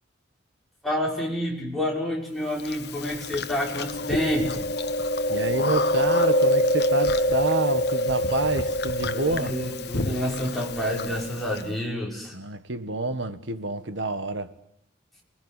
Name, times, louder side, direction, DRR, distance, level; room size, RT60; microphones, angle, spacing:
voice 1, 0.8-4.7 9.1-12.3, equal, ahead, 5.8 m, -28 dB
Chewing mastication, 2.7-11.6, left 1 dB, 55° left, 1.2 m, -25 dB
voice 2, 5.3-9.6 12.3-14.5, right 2 dB, 70° right, 1.6 m, -28 dB
29.0 x 20.5 x 8.5 m
head